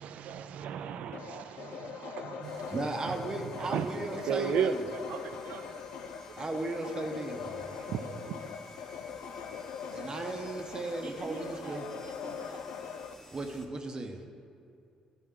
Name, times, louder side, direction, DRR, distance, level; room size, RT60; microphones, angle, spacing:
voice 1, 0.0-2.8 3.0-5.8 6.1-6.4 7.6-8.5, right 7 dB, 75° right, 11 dB, 0.4 m, -36 dB
sound 1, 1.1-13.1, left 7 dB, 85° left, 0.4 m, -42 dB
sound 2, 2.4-13.7, left 1 dB, 20° left, 1.1 m, -54 dB
voice 2, 2.7-4.8 6.4-7.7 9.9-11.9 13.3-14.3, right 2 dB, 35° right, 4 dB, 0.8 m, -36 dB
voice 3, 11.0-12.7, right 3 dB, 50° right, 3 dB, 1.0 m, -45 dB
11.0 x 4.5 x 3.7 m, 2.4 s
cardioid pair, 75°, 2 cm